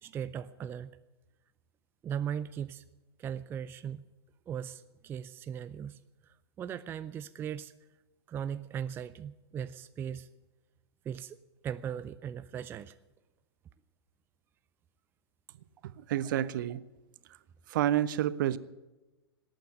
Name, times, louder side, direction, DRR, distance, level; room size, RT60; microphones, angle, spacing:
voice 1, 0.0-0.9 2.0-2.8 3.2-4.0 4.5-7.7 8.3-10.3 11.0-11.4 11.6-13.0 16.1-16.2, right 8 dB, 15° right, 14 dB, 0.4 m, -38 dB
voice 2, 16.0-16.8 17.7-18.6, right 12 dB, 50° right, 18 dB, 0.7 m, -29 dB
18.5 x 8.9 x 7.8 m, 1.1 s
figure-of-eight pair, 105°, 13 cm